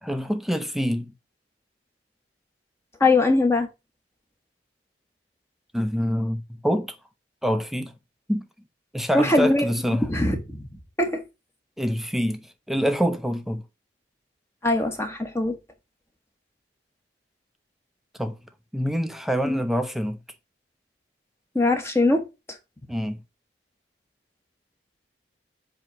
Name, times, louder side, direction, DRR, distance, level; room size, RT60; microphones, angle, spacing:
voice 1, 0.0-1.1 5.7-7.0 7.4-7.9 8.3-8.5 8.9-10.1 11.8-13.6 18.2-18.3 18.7-20.2 22.9-23.2, equal, ahead, 0.6 m, -26 dB
voice 2, 3.0-3.7 9.1-10.7 11.0-11.2 14.6-15.6 19.4-19.6 21.5-22.3, left 2 dB, 15° left, 1.0 m, -22 dB
7.8 x 2.9 x 5.8 m
head